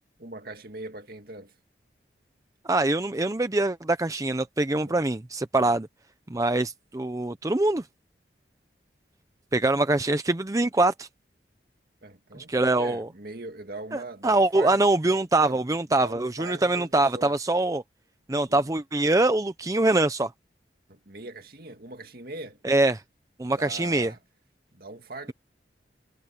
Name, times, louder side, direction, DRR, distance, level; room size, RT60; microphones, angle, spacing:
voice 1, 0.2-1.5 4.9-5.0 12.0-14.8 15.4-15.6 16.0-17.3 18.5-18.6 20.9-22.6 23.5-24.2 24.7-25.3, right 2 dB, 55° right, 2.2 m, -41 dB
voice 2, 2.7-5.9 6.3-7.8 9.5-11.1 12.4-13.1 13.9-17.8 18.3-20.3 22.6-23.0 23.4-24.1, right 2 dB, 20° right, 0.6 m, -24 dB
head